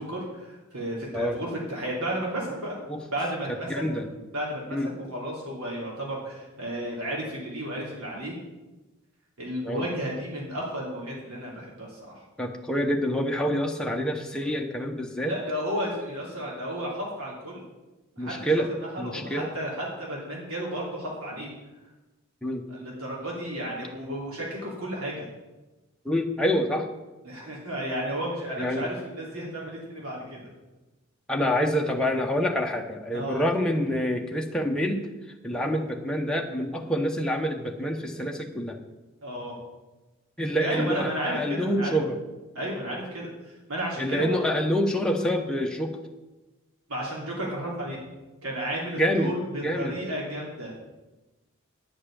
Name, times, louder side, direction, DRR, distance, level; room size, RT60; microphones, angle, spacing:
voice 1, 0.0-2.8 3.1-3.8 4.3-8.3 9.4-12.2 15.2-17.6 18.1-18.6 18.9-21.5 22.7-25.3 27.2-30.5 33.1-33.4 39.2-39.6 40.5-42.0 42.5-44.5 46.9-48.0 48.4-50.7, right 1 dB, 75° right, -4 dB, 3.0 m, -33 dB
voice 2, 3.7-4.0 4.7-4.9 9.6-9.8 12.4-15.3 18.2-18.7 19.0-19.5 22.4-22.6 26.0-26.9 28.6-28.8 31.3-35.1 35.4-38.8 40.4-42.2 44.0-46.0 49.0-49.3 49.6-49.9, equal, 5° left, 0 dB, 0.8 m, -27 dB
9.9 x 5.6 x 8.4 m, 1.1 s
head